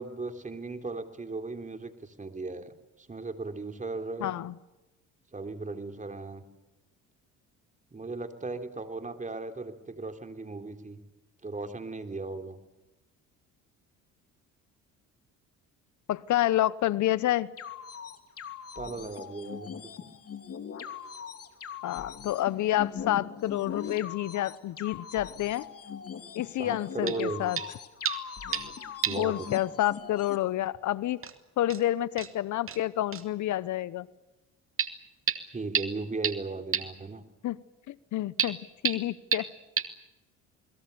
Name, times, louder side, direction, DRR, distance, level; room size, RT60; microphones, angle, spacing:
voice 1, 0.0-4.3 5.3-6.4 7.9-11.0 11.4-12.6 18.7-20.1 26.6-27.6 29.0-29.5 35.4-37.2, right 3 dB, 25° right, 6 dB, 3.4 m, -37 dB
voice 2, 4.2-4.5 16.1-17.5 21.8-25.7 26.3-27.6 29.2-31.2 31.6-34.1 37.4-37.6 37.9-38.6 38.8-39.5, left 14 dB, 60° left, 18 dB, 0.9 m, -29 dB
sound 1, 17.6-30.4, left 7 dB, 45° left, 3.0 m, -40 dB
sound 2, 27.1-27.2 27.6-27.8 28.1-28.7 29.0-29.3 29.6-29.7 30.7-30.8 31.2-31.3 31.7-31.8 32.2-32.3 32.7-32.8 33.1-33.3 34.8-34.9 35.3-35.4 35.7-35.9 36.2-36.3 36.7-36.8 38.4-38.5 38.9-39.0 39.3-39.4 39.8-39.9, right 7 dB, 40° right, 2.5 m, -29 dB
29.0 x 21.5 x 6.9 m, 1.0 s
supercardioid pair, 85°, 33 cm